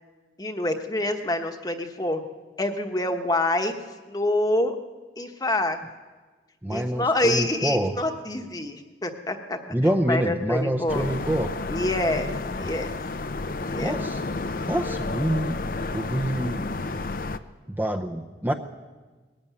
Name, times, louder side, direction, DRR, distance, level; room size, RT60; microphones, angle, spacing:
voice 1, 0.4-2.2 2.6-3.7 4.1-4.7 5.2-5.8 6.7-9.6 10.1-11.0 11.7-12.3 12.6-13.0 13.7-14.0, left 1 dB, 20° left, 6 dB, 1.2 m, -26 dB
voice 2, 6.6-7.9 9.7-11.5 13.8-14.2 14.7-15.6 15.9-16.6 17.7-18.5, right 1 dB, 10° right, 4 dB, 0.7 m, -26 dB
sound 1, 10.9-17.4, left 3 dB, 50° left, 0.6 m, -31 dB
20.0 x 14.0 x 9.3 m, 1.3 s
head